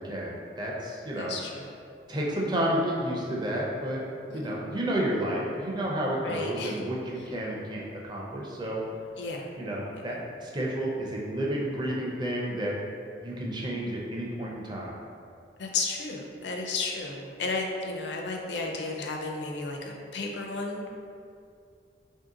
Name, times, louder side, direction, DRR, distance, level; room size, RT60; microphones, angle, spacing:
voice 1, 0.0-1.3 2.1-4.0 4.3-8.8 9.6-12.8 13.2-14.9, right 1 dB, 25° right, -3 dB, 0.5 m, -31 dB
voice 2, 1.2-1.7 4.3-4.5 6.2-6.7 9.2-9.5 15.6-20.9, left 3 dB, 70° left, 1 dB, 0.5 m, -33 dB
3.1 x 2.7 x 3.7 m, 2.4 s
head